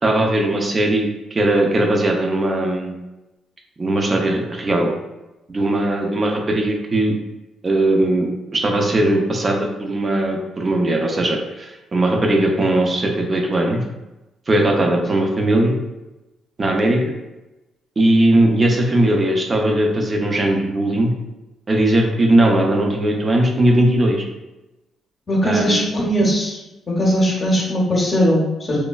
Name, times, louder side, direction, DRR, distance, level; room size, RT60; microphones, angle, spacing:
voice 1, 0.0-3.0 3.8-4.9 5.5-7.1 7.6-13.8 14.5-15.7 16.6-17.0 18.0-21.1 21.7-24.3 25.4-25.8, right 1 dB, 30° right, 1 dB, 0.5 m, -19 dB
voice 2, 25.3-26.6 27.0-28.9, equal, 40° left, -4 dB, 0.7 m, -19 dB
3.1 x 2.1 x 2.3 m, 1.0 s
cardioid pair, 90°, 0 cm